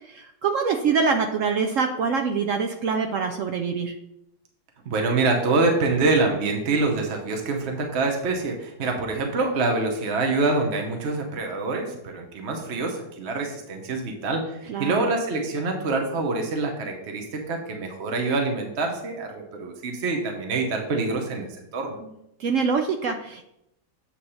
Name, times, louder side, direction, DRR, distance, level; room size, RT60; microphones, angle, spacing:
voice 1, 0.1-3.9 14.7-15.0 22.4-23.5, right 5 dB, 75° right, 5 dB, 0.7 m, -25 dB
voice 2, 4.9-22.0, right 3 dB, 50° right, 3 dB, 0.9 m, -25 dB
8.6 x 3.3 x 5.5 m, 0.81 s
omnidirectional pair, 1.9 m